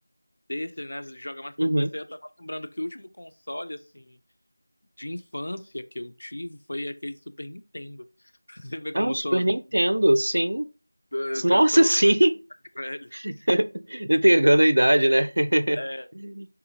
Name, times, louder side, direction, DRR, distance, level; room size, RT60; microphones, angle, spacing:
voice 1, 0.5-4.2 5.0-8.1 8.5-9.5 11.1-11.9 12.8-13.1 15.7-16.1, left 1 dB, 60° left, 0.4 m, -35 dB
voice 2, 1.6-1.9 8.9-10.7 11.4-12.4 13.1-15.8 16.2-16.5, right 1 dB, 65° right, 0.3 m, -21 dB
3.6 x 2.4 x 2.7 m
figure-of-eight pair, 175°, 0 cm